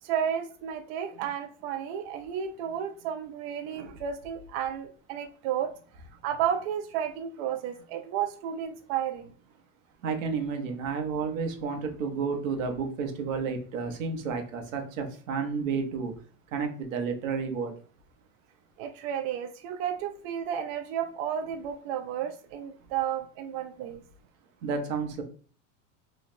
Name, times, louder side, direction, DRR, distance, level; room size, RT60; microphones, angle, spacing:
voice 1, 0.0-5.7 6.2-9.3 18.8-24.0, right 9 dB, 55° right, 7 dB, 0.5 m, -32 dB
voice 2, 10.0-16.1 16.5-17.7 24.6-25.2, right 5 dB, 85° right, 4 dB, 1.0 m, -31 dB
3.2 x 2.3 x 4.2 m, 0.42 s
supercardioid pair, 135°, 38 cm